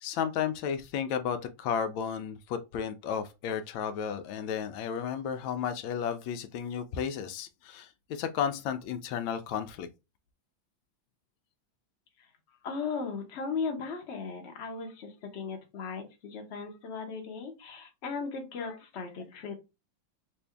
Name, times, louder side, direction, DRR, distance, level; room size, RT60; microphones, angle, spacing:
voice 1, 0.0-9.9 18.7-18.8, left 8 dB, 85° left, 1.3 m, -33 dB
voice 2, 12.6-19.6, left 5 dB, 45° left, 1.0 m, -37 dB
3.7 x 2.6 x 3.3 m
omnidirectional pair, 2.1 m